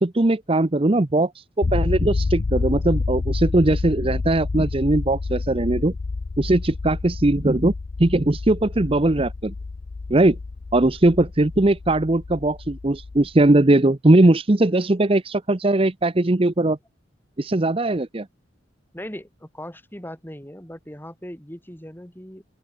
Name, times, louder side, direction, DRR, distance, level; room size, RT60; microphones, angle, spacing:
voice 1, 0.0-5.9 6.4-7.7 8.0-9.5 10.1-10.4 10.7-16.8 17.4-18.3, right 2 dB, 30° right, 0.7 m, -19 dB
sound 1, 1.6-13.5, left 3 dB, 40° left, 0.4 m, -28 dB
voice 2, 18.9-22.4, equal, 10° left, 4.0 m, -38 dB
open air
head